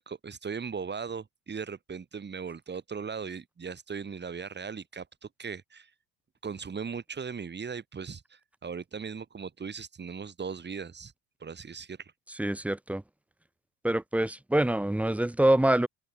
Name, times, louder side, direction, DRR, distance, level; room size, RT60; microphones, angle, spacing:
voice 1, 0.0-5.1 5.4-5.9 6.4-11.1 11.4-12.1, right 6 dB, 25° right, 2.1 m, -38 dB
voice 2, 12.4-13.0 13.8-15.9, right 1 dB, 5° right, 0.6 m, -25 dB
supercardioid pair, 95°, 45 cm